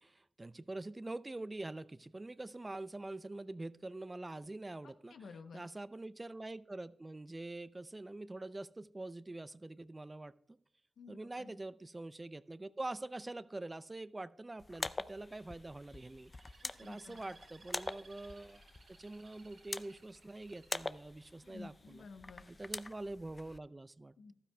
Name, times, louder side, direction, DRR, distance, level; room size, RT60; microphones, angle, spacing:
voice 1, 0.0-5.2 5.5-10.6 11.1-18.6 19.0-22.1 22.5-24.1, right 2 dB, 30° right, 16 dB, 0.4 m, -45 dB
voice 2, 4.8-5.7 11.0-11.5 16.6-17.2 21.4-22.4 24.2-24.3, left 4 dB, 80° left, 8 dB, 0.8 m, -52 dB
sound 1, 14.6-23.6, left 2 dB, 35° left, 0.4 m, -45 dB
Bird, 15.9-21.9 22.5-22.9, right 4 dB, 75° right, 2.0 m, -63 dB
14.5 x 12.0 x 2.3 m, 0.71 s
cardioid pair, 45°, 0 cm